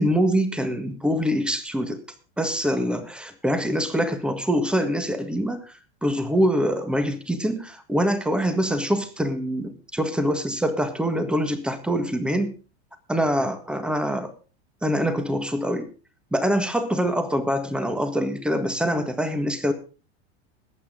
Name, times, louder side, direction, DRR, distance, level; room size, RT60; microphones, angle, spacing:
voice 1, 0.0-2.0 2.4-5.7 6.0-12.6 13.1-14.3 14.8-15.9 16.3-19.7, equal, 5° right, 9 dB, 1.6 m, -24 dB
21.0 x 8.7 x 3.7 m, 0.35 s
supercardioid pair, 140°, 32 cm